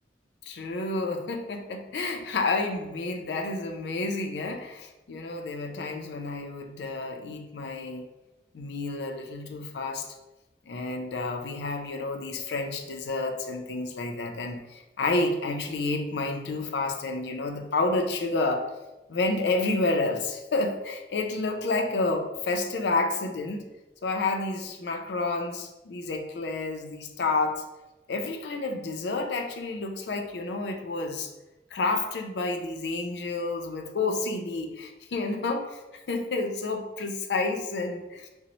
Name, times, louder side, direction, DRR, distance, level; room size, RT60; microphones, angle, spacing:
voice 1, 0.4-8.0 8.5-10.1 10.7-18.7 19.1-23.6 24.0-27.6 28.1-31.3 31.7-35.8 36.1-38.3, left 3 dB, 75° left, 5 dB, 0.4 m, -30 dB
3.9 x 2.0 x 2.9 m, 1.0 s
head